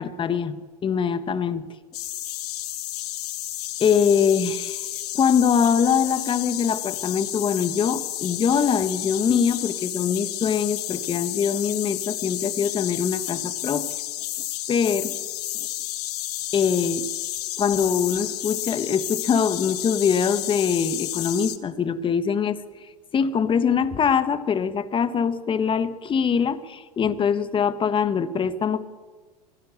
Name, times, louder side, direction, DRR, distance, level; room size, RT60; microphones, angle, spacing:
voice 1, 0.0-1.7 3.8-13.9 14.7-15.1 15.5-15.7 16.5-17.1 17.6-22.6 23.1-28.8, left 7 dB, 25° left, 12 dB, 1.4 m, -23 dB
sound 1, 1.9-21.6, left 15 dB, 75° left, 1.5 m, -31 dB
24.5 x 16.5 x 8.3 m, 1.4 s
hypercardioid pair, 110°, 20 cm